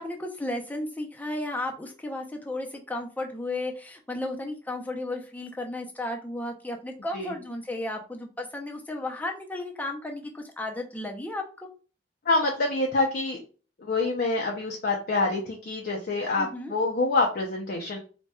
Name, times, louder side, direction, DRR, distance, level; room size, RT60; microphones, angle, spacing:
voice 1, 0.0-11.7 16.4-16.7, left 2 dB, 10° left, 2 dB, 0.5 m, -34 dB
voice 2, 12.3-13.4 13.8-18.0, left 2 dB, 55° left, 1 dB, 0.5 m, -26 dB
4.1 x 2.2 x 2.2 m, 0.37 s
head